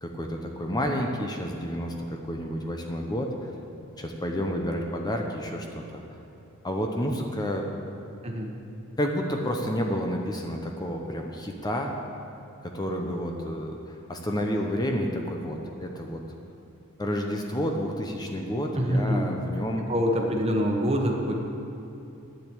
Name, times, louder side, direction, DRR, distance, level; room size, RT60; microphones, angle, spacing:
voice 1, 0.0-3.5 4.0-6.0 6.6-7.6 9.0-11.9 12.6-16.2 17.0-19.9, equal, 20° left, 2 dB, 0.8 m, -30 dB
voice 2, 18.7-19.3 19.9-21.4, equal, 30° right, 1 dB, 1.3 m, -25 dB
10.0 x 7.6 x 8.6 m, 2.9 s
head